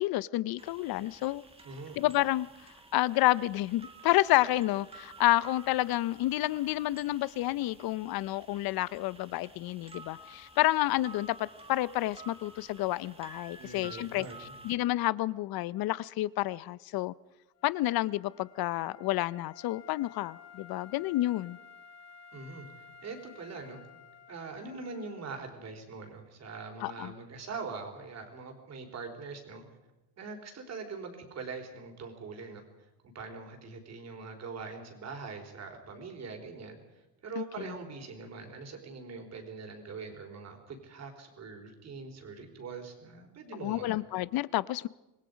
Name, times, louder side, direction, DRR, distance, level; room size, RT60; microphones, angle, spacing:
voice 1, 0.0-1.4 2.0-2.5 2.9-17.1 17.6-21.6 26.8-27.1 37.4-37.5 43.6-44.9, left 16 dB, 60° left, 19 dB, 0.7 m, -29 dB
sound 1, 0.6-14.8, right 3 dB, 15° right, 1.7 m, -52 dB
voice 2, 1.6-2.0 13.6-14.5 22.3-23.8 24.3-29.6 30.2-32.6 33.1-36.8 37.2-44.0, right 4 dB, 40° right, 4 dB, 4.0 m, -43 dB
Wind instrument woodwind instrument, 17.6-25.4, left 6 dB, 40° left, 1.9 m, -54 dB
26.5 x 20.5 x 5.2 m, 1.0 s
cardioid pair, 155°, 42 cm